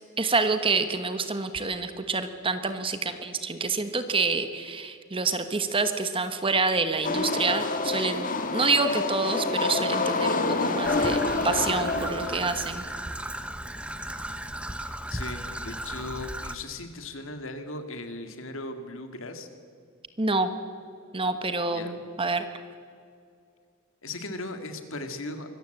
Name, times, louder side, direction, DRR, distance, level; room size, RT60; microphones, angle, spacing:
voice 1, 0.2-12.9 20.2-20.5 21.1-22.4, right 3 dB, 25° right, 9 dB, 1.2 m, -27 dB
sound 1, 7.0-12.5, left 3 dB, 40° left, 1.8 m, -27 dB
Traffic noise roadway noise / Trickle dribble, 10.8-16.6, right 1 dB, 5° right, 0.9 m, -35 dB
voice 2, 15.1-19.5 21.7-22.0 24.0-25.5, left 2 dB, 65° left, 7 dB, 2.1 m, -37 dB
24.5 x 14.5 x 8.0 m, 2.3 s
head